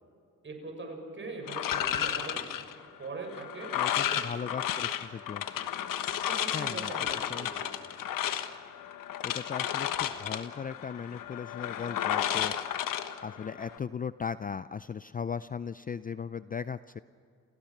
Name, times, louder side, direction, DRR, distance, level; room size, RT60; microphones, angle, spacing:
voice 1, 0.4-2.5 3.0-3.7 4.1-4.6 5.5-5.7 6.3-7.7, right 3 dB, 35° right, 3 dB, 7.0 m, -42 dB
sound 1, 1.5-13.8, left 10 dB, 75° left, 1.3 m, -33 dB
voice 2, 3.7-5.4 6.5-7.5 9.2-12.5 13.2-17.0, left 6 dB, 25° left, 15 dB, 0.4 m, -38 dB
29.0 x 16.5 x 6.0 m, 2.4 s
cardioid pair, 80°, 33 cm